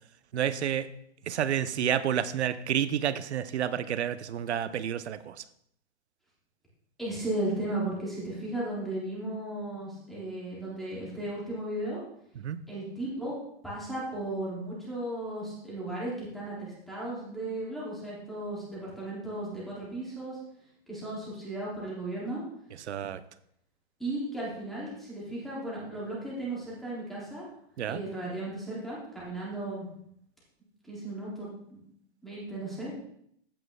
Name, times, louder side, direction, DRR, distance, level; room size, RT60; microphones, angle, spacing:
voice 1, 0.3-0.9 1.3-5.4 12.4-12.6 22.9-23.2 27.8-28.0, right 9 dB, 85° right, 14 dB, 0.7 m, -29 dB
voice 2, 7.0-12.0 12.7-13.3 13.6-20.4 20.9-22.4 24.0-27.5 27.9-29.9 30.9-31.8 32.2-32.9, right 1 dB, ahead, -8 dB, 0.6 m, -35 dB
14.0 x 7.7 x 2.2 m, 0.71 s
hypercardioid pair, 180°, 33 cm